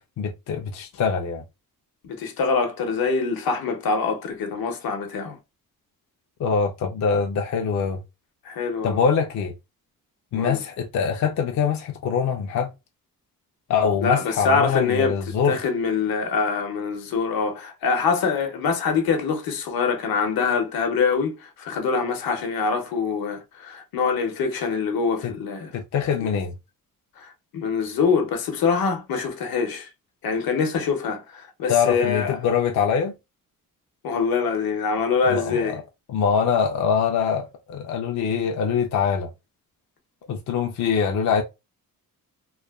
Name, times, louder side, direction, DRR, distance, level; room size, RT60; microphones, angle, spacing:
voice 1, 0.2-1.4 6.4-8.0 8.8-9.5 10.3-12.7 13.7-15.6 25.2-25.3 25.7-26.5 31.7-33.1 35.3-35.8 36.1-39.3 40.3-41.4, left 6 dB, 50° left, 0.4 m, -23 dB
voice 2, 2.0-5.4 8.4-9.0 10.3-10.6 14.0-25.7 26.2-26.4 27.2-29.9 30.2-32.4 34.0-35.8, left 5 dB, 75° left, 0.8 m, -24 dB
3.0 x 2.1 x 2.3 m
cardioid pair, 120°, 36 cm